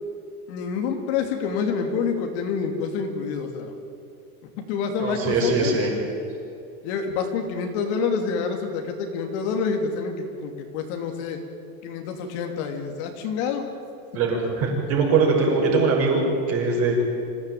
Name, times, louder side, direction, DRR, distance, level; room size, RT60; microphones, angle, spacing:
voice 1, 0.5-3.7 4.6-5.8 6.8-11.4 11.8-13.7, left 5 dB, 45° left, 4 dB, 2.7 m, -27 dB
voice 2, 5.0-5.9 14.1-17.0, right 3 dB, 30° right, 0 dB, 6.0 m, -22 dB
26.5 x 16.0 x 9.2 m, 2.6 s
supercardioid pair, 165°, 45 cm